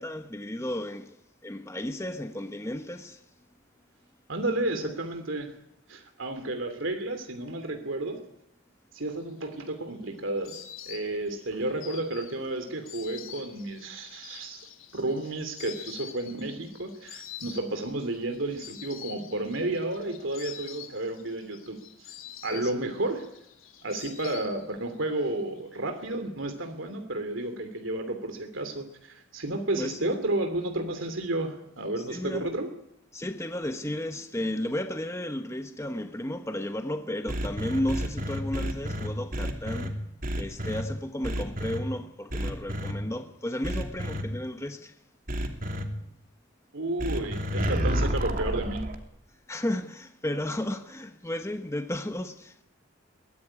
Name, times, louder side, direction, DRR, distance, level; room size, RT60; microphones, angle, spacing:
voice 1, 0.0-3.2 22.5-22.7 29.7-30.2 32.0-32.5 33.1-40.0 40.4-45.0 49.5-52.6, left 1 dB, 15° left, 1.1 m, -33 dB
voice 2, 4.3-5.5 5.9-8.2 8.9-14.6 14.9-22.1 22.4-23.2 23.8-32.7 46.7-48.8, right 2 dB, 70° right, 2.9 m, -32 dB
Insect, 9.3-25.0 25.3-26.1, left 10 dB, 80° left, 3.6 m, -46 dB
sound 1, 37.3-39.9 40.2-40.8 41.2-41.8 42.3-42.9 43.6-44.2 45.3-45.8 47.0-49.0, equal, 45° right, 3.0 m, -30 dB
22.5 x 19.0 x 9.9 m
head